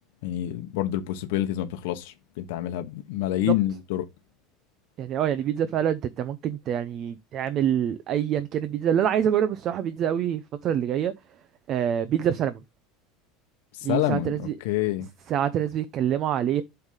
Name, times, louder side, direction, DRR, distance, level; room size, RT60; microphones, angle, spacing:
voice 1, 0.2-4.0 13.7-15.1, left 13 dB, 75° left, 1.1 m, -27 dB
voice 2, 5.0-11.1 11.7-12.6 13.8-14.5 15.3-16.6, right 9 dB, 35° right, 0.7 m, -26 dB
8.1 x 3.5 x 5.6 m
cardioid pair, 170°, 0 cm